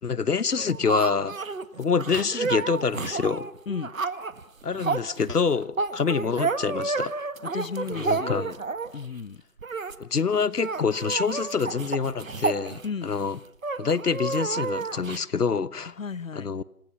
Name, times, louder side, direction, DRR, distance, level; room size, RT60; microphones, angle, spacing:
voice 1, 0.0-1.4 1.8-3.5 4.6-7.1 7.9-8.5 10.0-13.4 13.8-15.9 16.3-16.6, left 5 dB, 85° left, 1.2 m, -26 dB
sound 1, 0.6-9.1 9.6-10.0 10.2-10.3 10.6-13.2 13.6-15.2, right 4 dB, 60° right, 1.6 m, -30 dB
voice 2, 7.5-8.6 8.9-9.4 12.8-13.1 16.0-16.5, left 5 dB, 60° left, 0.9 m, -34 dB
27.5 x 19.5 x 7.2 m
figure-of-eight pair, 170°, 45 cm